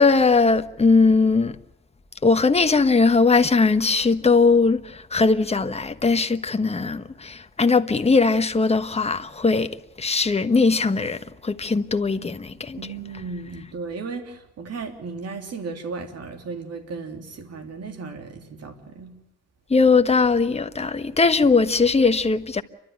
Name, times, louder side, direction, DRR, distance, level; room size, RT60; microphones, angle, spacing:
voice 1, 0.0-1.6 2.2-12.8 19.7-22.6, left 4 dB, 20° left, 1.2 m, -20 dB
voice 2, 12.8-19.1, right 4 dB, 55° right, 3.3 m, -35 dB
29.5 x 12.5 x 9.5 m
cardioid pair, 90°, 30 cm